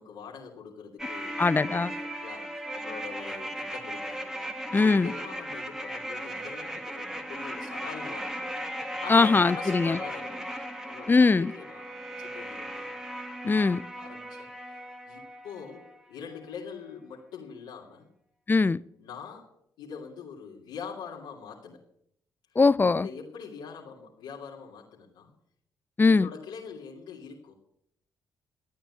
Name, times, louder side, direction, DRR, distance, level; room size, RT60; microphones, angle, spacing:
voice 1, 0.0-4.3 4.8-8.5 8.7-10.5 10.9-12.9 13.4-14.5 15.1-18.1 19.0-19.5 19.8-21.8 23.0-25.3 26.1-27.5, left 6 dB, 85° left, 2.4 m, -43 dB
sound 1, 1.0-16.0 16.3-16.4, right 1 dB, 5° right, 1.9 m, -37 dB
voice 2, 1.4-1.9 4.7-5.1 9.1-10.0 11.1-11.5 13.4-13.8 18.5-18.8 22.6-23.1 26.0-26.3, left 4 dB, 25° left, 0.5 m, -21 dB
13.0 x 8.9 x 8.2 m
supercardioid pair, 55°, 8 cm